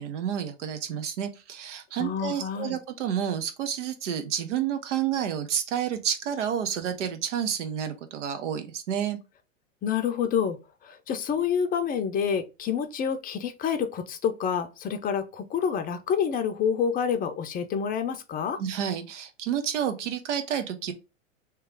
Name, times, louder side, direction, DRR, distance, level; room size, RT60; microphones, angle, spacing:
voice 1, 0.0-9.2 18.6-20.9, right 9 dB, 65° right, 1.0 m, -30 dB
voice 2, 2.0-2.8 9.8-10.6 10.8-18.6, left 7 dB, 20° left, 0.6 m, -28 dB
3.2 x 3.0 x 3.5 m
hypercardioid pair, 100°, 38 cm